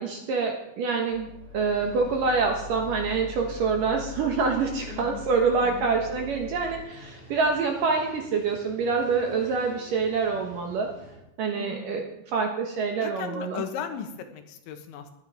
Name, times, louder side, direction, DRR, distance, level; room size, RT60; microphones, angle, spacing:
voice 1, 0.0-10.9 11.4-13.6, right 4 dB, 65° right, 2 dB, 2.3 m, -26 dB
sound 1, 1.1-6.8, left 8 dB, 10° right, 7.2 m, -42 dB
sound 2, 1.6-11.2, equal, 30° left, 5.0 m, -48 dB
voice 2, 4.9-6.0 11.5-12.0 13.0-15.1, left 7 dB, 80° left, 6 dB, 3.6 m, -37 dB
17.0 x 12.0 x 5.0 m, 0.86 s
omnidirectional pair, 5.3 m